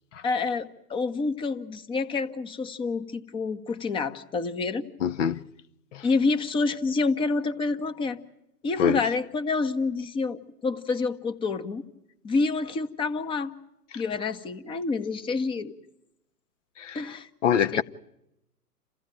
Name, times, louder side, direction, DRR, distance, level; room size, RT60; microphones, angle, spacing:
voice 1, 0.2-4.8 6.0-8.2 8.6-11.8 12.2-13.5 13.9-15.7 16.9-17.8, left 4 dB, 10° left, 0.9 m, -28 dB
voice 2, 5.0-5.4 5.9-6.1 8.8-9.0 16.8-17.1 17.4-17.8, left 8 dB, 50° left, 1.0 m, -24 dB
29.0 x 15.5 x 9.1 m
hypercardioid pair, 125°, 47 cm